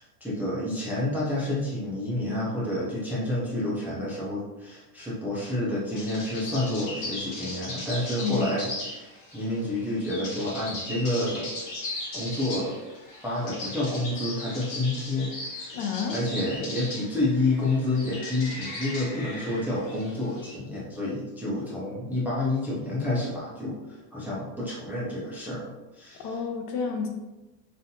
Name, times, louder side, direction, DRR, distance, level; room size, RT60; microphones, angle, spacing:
voice 1, 0.0-11.5 12.1-12.7 13.2-15.3 15.6-15.7 16.1-26.4, left 1 dB, 5° right, -7 dB, 0.5 m, -29 dB
sound 1, 5.9-20.6, left 2 dB, 40° left, 1.2 m, -38 dB
voice 2, 15.7-16.2 26.2-27.1, left 6 dB, 55° left, 3 dB, 0.9 m, -29 dB
5.5 x 2.6 x 2.7 m, 1.1 s
supercardioid pair, 140°, 48 cm